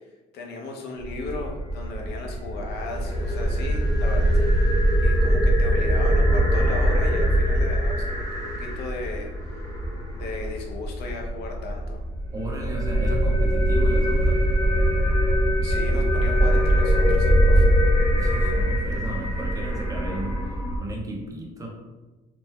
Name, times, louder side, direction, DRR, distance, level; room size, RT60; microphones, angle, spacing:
voice 1, 0.3-4.3 4.6-9.3 10.1-12.0 15.6-17.7, left 3 dB, 75° left, 1 dB, 0.8 m, -36 dB
sound 1, 1.0-20.8, equal, 20° left, 1.0 m, -22 dB
voice 2, 12.3-14.4 18.1-21.7, right 2 dB, 20° right, 0 dB, 0.9 m, -34 dB
3.3 x 3.0 x 3.2 m, 1.2 s
cardioid pair, 110°, 17 cm